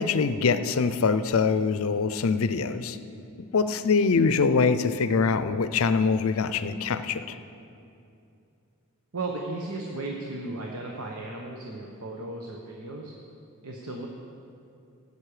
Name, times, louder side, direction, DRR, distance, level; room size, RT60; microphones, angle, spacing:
voice 1, 0.0-3.0 3.5-7.4, left 5 dB, 70° left, 12 dB, 0.5 m, -24 dB
voice 2, 9.1-13.1 13.6-14.1, right 2 dB, 90° right, -1 dB, 1.1 m, -35 dB
15.0 x 8.4 x 4.9 m, 2.6 s
head